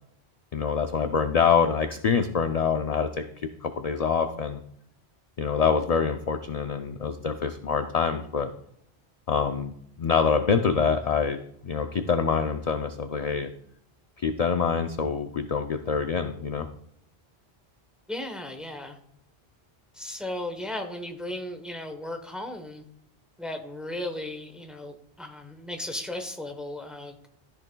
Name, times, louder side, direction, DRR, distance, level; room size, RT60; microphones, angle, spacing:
voice 1, 0.5-4.6 5.4-8.5 9.3-9.7 10.0-11.4 11.6-13.5 14.2-16.7, left 6 dB, 50° left, 7 dB, 0.5 m, -25 dB
voice 2, 18.1-19.0 19.9-22.8 23.4-27.3, left 1 dB, ahead, 5 dB, 0.8 m, -36 dB
13.5 x 6.1 x 2.2 m, 0.71 s
omnidirectional pair, 1.1 m